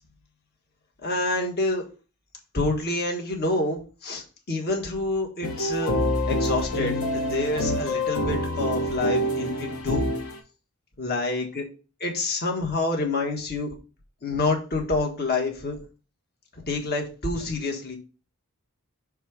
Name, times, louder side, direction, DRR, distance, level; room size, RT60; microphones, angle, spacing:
voice 1, 1.0-1.8 2.5-5.9 6.3-10.0 11.0-11.6 12.0-13.7 14.2-15.8 16.7-18.0, left 2 dB, 45° left, 1 dB, 1.5 m, -27 dB
sound 1, 5.4-10.4, left 1 dB, 65° left, 1.3 m, -26 dB
6.4 x 3.5 x 5.0 m, 0.34 s
head